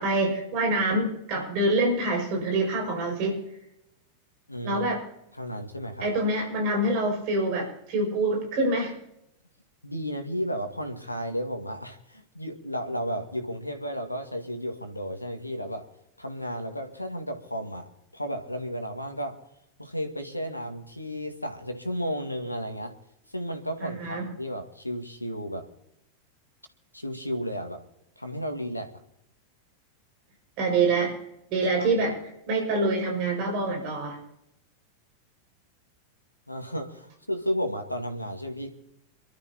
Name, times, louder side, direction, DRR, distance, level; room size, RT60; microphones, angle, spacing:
voice 1, 0.0-3.4 4.6-5.0 6.0-8.9 23.8-24.3 30.6-31.2 31.5-34.2, right 2 dB, 45° right, 1 dB, 5.9 m, -26 dB
voice 2, 4.5-4.8 5.3-6.1 9.8-15.9 16.2-17.9 18.1-19.4 19.8-22.9 23.3-25.6 26.9-27.8 28.2-28.9 31.8-32.0 36.5-38.7, equal, 85° left, 6 dB, 1.9 m, -33 dB
27.5 x 12.5 x 2.9 m, 0.81 s
figure-of-eight pair, 90°, 0 cm